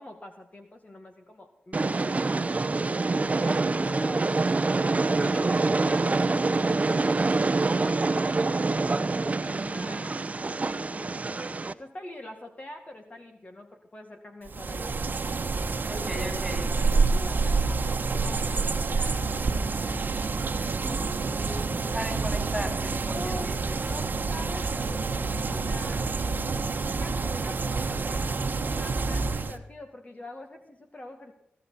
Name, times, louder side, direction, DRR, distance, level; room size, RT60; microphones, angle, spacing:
voice 1, 0.0-2.6 3.1-4.6 5.2-6.2 6.6-10.3 10.6-15.1 15.7-16.4 16.7-20.0 23.0-28.2 28.6-31.3, left 1 dB, 35° left, 4 dB, 2.0 m, -44 dB
Train, 1.7-11.7, right 3 dB, 40° right, 0.9 m, -26 dB
sound 1, 14.5-29.6, right 4 dB, 55° right, 1.3 m, -28 dB
voice 2, 15.9-16.7 19.2-19.3 20.8-23.8 25.5-25.7, equal, 5° right, 4 dB, 3.9 m, -37 dB
17.5 x 14.0 x 4.2 m, 0.76 s
cardioid pair, 55°, 4 cm